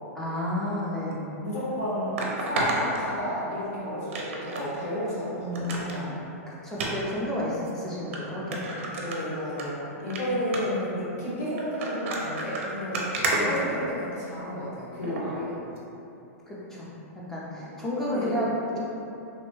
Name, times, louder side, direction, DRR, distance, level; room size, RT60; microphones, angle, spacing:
voice 1, 0.1-1.2 5.4-6.2 6.5-8.8 13.3-13.6 16.5-16.9 17.3-18.5, left 1 dB, 5° left, -8 dB, 0.4 m, -31 dB
voice 2, 1.1-2.1 2.4-6.1 8.9-13.1 13.4-15.6 18.1-18.3, equal, 70° left, -10 dB, 1.4 m, -32 dB
sound 1, 1.1-1.2 2.2-3.6 4.1-4.7 5.1-5.2 5.5-6.0 6.7-6.9 7.7-7.8 8.1-8.2 8.5-9.7 10.0-10.2 10.5-10.8 11.6-14.3 15.0-15.3 15.8-15.9, right 2 dB, 55° right, 0.5 m, -31 dB
3.0 x 2.1 x 3.1 m, 2.8 s
hypercardioid pair, 160°, 8 cm